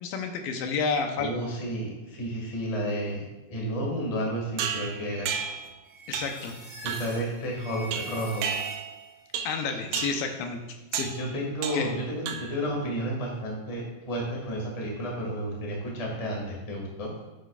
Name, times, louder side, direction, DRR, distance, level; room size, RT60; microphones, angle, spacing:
voice 1, 0.0-1.3 6.1-6.6 9.4-10.6 10.9-11.1 11.7-11.9, left 5 dB, 85° left, 5 dB, 2.6 m, -30 dB
voice 2, 1.2-3.2 3.5-5.3 6.8-8.5 11.1-17.1, equal, 20° left, -2 dB, 0.9 m, -31 dB
sound 1, 4.6-5.7 6.1-6.5 6.9-7.2 7.9-9.0 9.3-9.6 9.9-10.3 10.9-11.2 11.6-12.0 12.3-12.7, right 7 dB, 80° right, 2.0 m, -32 dB
sound 2, 5.8-9.2, right 2 dB, 25° right, 0.5 m, -44 dB
10.0 x 8.0 x 2.4 m, 1.1 s
omnidirectional pair, 4.1 m